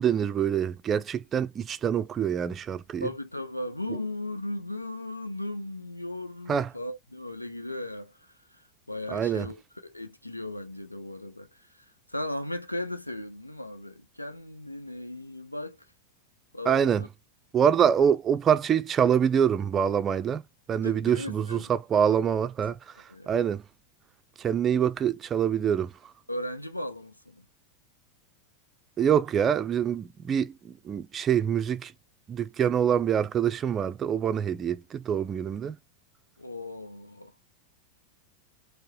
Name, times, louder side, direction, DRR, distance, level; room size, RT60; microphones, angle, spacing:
voice 1, 0.0-3.1 6.5-6.7 9.1-9.5 16.7-17.0 17.5-20.4 20.7-22.8 23.3-23.6 24.4-25.9 29.0-31.9 32.3-35.8, right 8 dB, 25° right, 0.4 m, -25 dB
voice 2, 3.0-15.8 16.5-17.1 20.8-21.7 22.3-22.4 23.1-23.4 26.3-27.5 36.4-37.3, left 1 dB, 85° left, 0.6 m, -37 dB
4.6 x 2.1 x 2.7 m
figure-of-eight pair, 90°, 0 cm